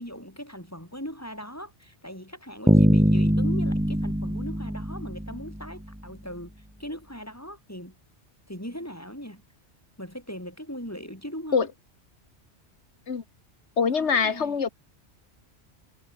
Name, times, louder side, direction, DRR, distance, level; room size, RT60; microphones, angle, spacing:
voice 1, 0.0-6.5 6.8-7.9 8.5-9.4 10.0-11.7 13.9-14.6, equal, 15° left, 6.8 m, -39 dB
Bass guitar, 2.7-5.8, equal, 5° right, 3.1 m, -22 dB
voice 2, 13.8-14.7, left 6 dB, 80° left, 1.8 m, -23 dB
omnidirectional pair, 1.1 m